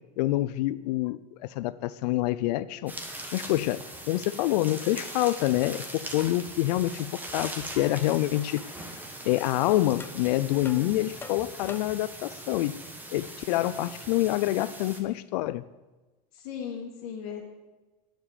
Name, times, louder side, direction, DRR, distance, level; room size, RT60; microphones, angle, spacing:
voice 1, 0.2-2.9 3.3-3.8 4.1-8.9 9.3-12.8 13.1-15.6, left 16 dB, 75° left, 15 dB, 0.4 m, -27 dB
sound 1, 2.9-15.0, right 1 dB, 10° right, 1.2 m, -41 dB
sound 2, 8.0-8.1 8.6-8.7 9.4-9.5 10.0-10.2 10.6-12.1, left 4 dB, 10° left, 0.4 m, -45 dB
voice 2, 10.4-11.0 16.4-17.4, left 7 dB, 60° left, -3 dB, 1.9 m, -37 dB
8.8 x 7.4 x 8.2 m, 1.2 s
supercardioid pair, 150°, 21 cm